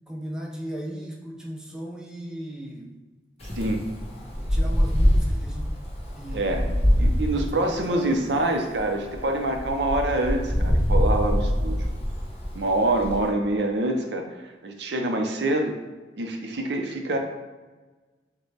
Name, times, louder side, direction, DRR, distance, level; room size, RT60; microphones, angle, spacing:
voice 1, 0.1-3.0 4.4-5.7 6.2-8.5, equal, 5° right, -1 dB, 0.5 m, -37 dB
Wind, 3.4-13.3, equal, 35° left, 0.9 m, -25 dB
voice 2, 6.3-6.6 7.0-11.9 12.5-14.2 14.6-15.8 16.2-17.2, right 2 dB, 80° right, 4 dB, 0.6 m, -25 dB
6.4 x 2.2 x 3.3 m, 1.3 s
head